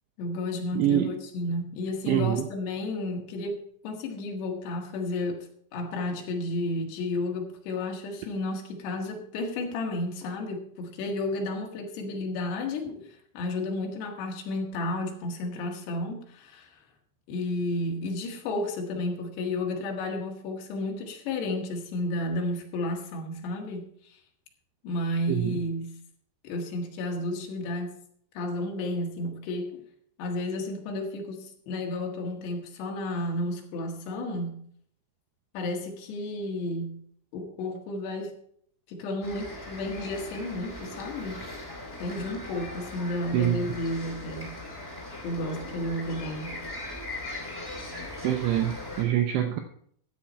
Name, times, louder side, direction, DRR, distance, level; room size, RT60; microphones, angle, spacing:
voice 1, 0.2-5.5 5.7-16.7 17.3-24.2 24.8-26.0 26.4-27.9 28.3-29.8 30.2-34.7 35.5-37.0 37.3-38.3 38.9-41.4 42.0-44.6 45.2-46.6, left 2 dB, 65° left, 2 dB, 3.5 m, -32 dB
voice 2, 0.8-1.1 2.1-2.5 25.3-25.6 43.3-43.6 48.2-49.6, right 12 dB, 80° right, 6 dB, 2.6 m, -25 dB
sound 1, 39.2-49.0, left 1 dB, 15° left, 0.9 m, -39 dB
13.5 x 8.7 x 4.3 m, 0.63 s
omnidirectional pair, 5.7 m